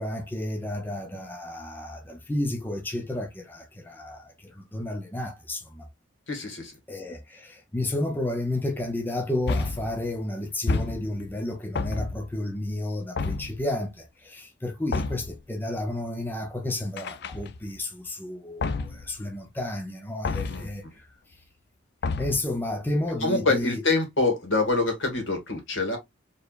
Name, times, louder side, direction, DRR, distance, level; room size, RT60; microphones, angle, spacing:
voice 1, 0.0-5.9 6.9-21.1 22.2-23.8, left 1 dB, 10° left, 0.7 m, -32 dB
voice 2, 6.3-6.7 20.5-20.7 23.2-26.0, left 3 dB, 70° left, 2.2 m, -25 dB
sound 1, 9.5-10.0 10.7-11.3 11.8-12.4 13.2-13.7 14.9-15.4 17.0-17.8 18.6-19.1 20.2-20.8 22.0-22.6, left 3 dB, 55° left, 0.4 m, -30 dB
4.6 x 3.4 x 2.4 m
head